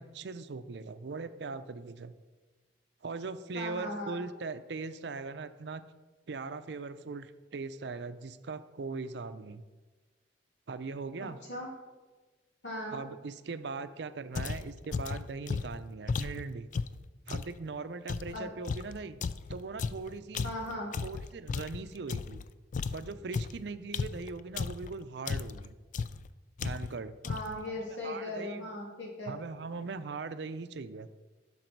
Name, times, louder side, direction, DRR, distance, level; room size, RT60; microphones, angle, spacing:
voice 1, 0.0-2.1 3.0-5.8 6.3-9.6 10.7-11.4 12.9-16.7 17.3-19.2 19.5-20.5 21.0-22.4 22.9-25.8 26.6-27.2 27.7-28.7 29.3-31.1, right 4 dB, 65° right, 11 dB, 0.5 m, -40 dB
voice 2, 3.5-4.2 11.2-11.7 12.6-13.0 18.3-18.5 20.4-20.9 27.2-29.4, left 1 dB, 80° left, -3 dB, 2.8 m, -38 dB
sound 1, 14.4-17.6 18.1-22.5 22.7-24.9 25.3-25.7 25.9-26.3 26.6-27.0 27.2-27.6, left 5 dB, 45° left, 0.3 m, -35 dB
12.0 x 6.0 x 4.6 m, 1.3 s
head